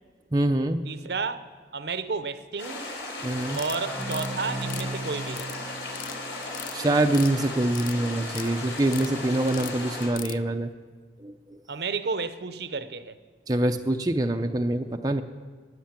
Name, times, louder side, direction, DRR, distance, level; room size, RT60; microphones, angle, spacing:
voice 1, 0.3-0.9 3.2-3.6 6.7-10.7 11.2-11.6 13.5-15.2, right 1 dB, 20° right, 4 dB, 0.5 m, -25 dB
voice 2, 0.8-1.4 1.7-2.9 3.6-5.5 11.7-13.2, right 4 dB, 60° right, 12 dB, 0.7 m, -31 dB
sound 1, 2.6-10.1, left 2 dB, 75° left, 3.7 m, -36 dB
sound 2, 3.5-4.3 4.6-5.6 5.8-6.2 6.4-7.3 7.6-8.5 8.8-9.1 9.5-10.4, left 12 dB, 45° left, 0.3 m, -39 dB
sound 3, 3.9-7.3, right 2 dB, 10° left, 1.2 m, -37 dB
13.0 x 9.6 x 8.8 m, 1.5 s
head